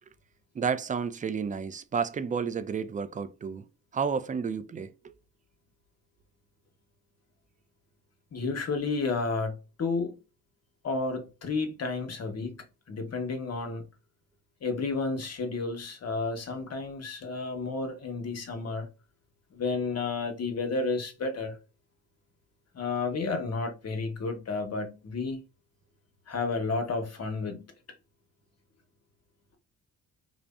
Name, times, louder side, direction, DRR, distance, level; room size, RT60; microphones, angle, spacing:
voice 1, 0.6-3.7 3.9-4.9, right 6 dB, 20° right, 0.3 m, -31 dB
voice 2, 8.3-10.2 10.8-12.5 12.9-13.8 14.6-18.9 19.5-21.5 22.7-25.4 26.3-27.6, left 4 dB, 40° left, 0.8 m, -31 dB
2.5 x 2.1 x 2.3 m
supercardioid pair, 60°, 38 cm